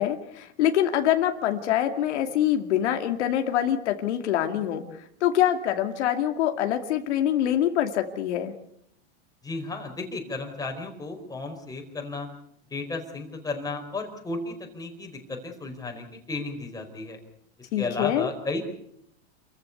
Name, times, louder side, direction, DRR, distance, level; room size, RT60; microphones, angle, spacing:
voice 1, 0.0-4.8 5.2-8.5 17.7-18.3, left 11 dB, 75° left, 5 dB, 2.5 m, -25 dB
voice 2, 9.4-12.3 12.7-17.2 17.6-18.6, left 3 dB, 10° left, 3 dB, 4.9 m, -34 dB
28.0 x 15.0 x 8.4 m, 0.71 s
supercardioid pair, 130°, 35 cm